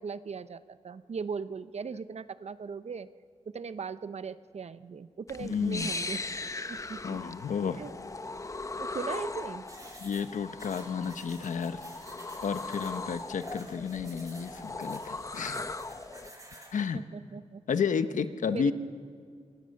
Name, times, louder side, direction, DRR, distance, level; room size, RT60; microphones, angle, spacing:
voice 1, 0.0-3.1 3.5-6.2 6.7-7.2 7.8-7.9 8.8-9.6 16.9-17.6 18.5-18.7, right 5 dB, 60° right, 13 dB, 0.8 m, -38 dB
sound 1, 5.3-16.3, left 3 dB, 25° left, 0.8 m, -39 dB
voice 2, 5.4-5.9 7.0-7.8 10.0-11.8 12.4-15.6 16.7-17.0 17.7-18.7, left 6 dB, 80° left, 10 dB, 1.1 m, -31 dB
sound 2, 9.7-16.7, right 1 dB, 25° right, 7.5 m, -52 dB
26.5 x 20.5 x 6.6 m, 2.1 s
wide cardioid pair, 90°, 13 cm